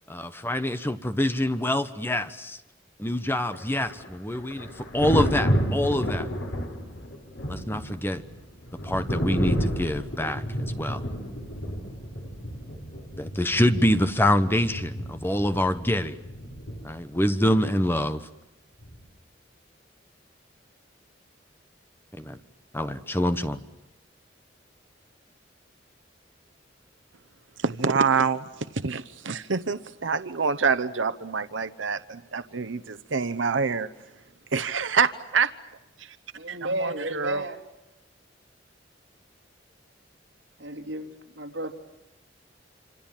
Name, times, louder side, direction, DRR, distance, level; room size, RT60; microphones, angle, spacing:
voice 1, 0.1-2.6 3.0-6.3 7.5-8.2 8.8-11.0 13.2-16.2 16.8-18.2 22.2-22.4 22.7-23.6, left 1 dB, 10° left, 1.2 m, -25 dB
Thunder, 3.5-17.2 18.8-19.0, equal, 85° left, 6.3 m, -31 dB
voice 2, 27.6-33.9 34.5-35.5 36.0-36.2 36.5-37.5, right 5 dB, 90° right, 0.9 m, -26 dB
voice 3, 36.3-37.6 40.6-41.7, right 1 dB, 70° right, 3.3 m, -32 dB
27.5 x 26.5 x 7.4 m
head